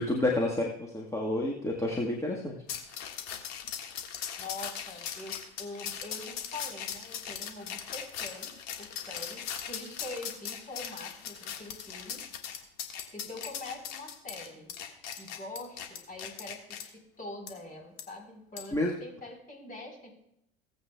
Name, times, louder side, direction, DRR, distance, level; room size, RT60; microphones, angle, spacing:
voice 1, 0.0-2.6 18.7-18.9, left 1 dB, 10° left, -2 dB, 1.5 m, -29 dB
sound 1, 2.7-16.8 17.5-17.6 18.0-18.1 18.6-18.8, left 8 dB, 60° left, 1.7 m, -39 dB
voice 2, 4.4-8.5 8.8-12.2 13.1-14.7 15.2-20.1, left 2 dB, 25° left, 2 dB, 4.3 m, -44 dB
18.0 x 8.0 x 2.3 m, 0.76 s
hypercardioid pair, 75°, 31 cm